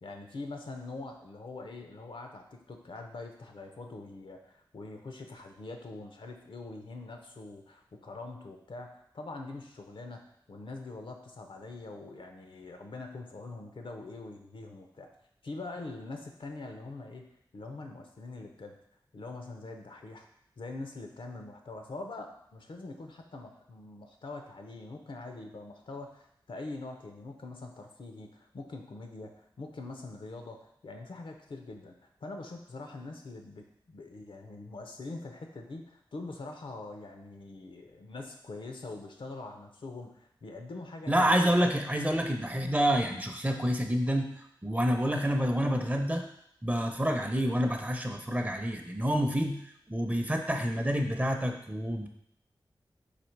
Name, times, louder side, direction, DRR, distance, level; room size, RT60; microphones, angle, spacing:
voice 1, 0.0-10.2 10.5-15.1 15.4-17.3 17.5-18.8 19.1-20.3 20.6-32.0 32.2-41.6, left 3 dB, 75° left, 4 dB, 0.6 m, -43 dB
voice 2, 41.1-44.3 44.6-46.2 46.6-49.6 49.9-52.1, equal, 15° right, 4 dB, 0.6 m, -28 dB
4.1 x 2.8 x 4.5 m, 0.73 s
cardioid pair, 50°, 9 cm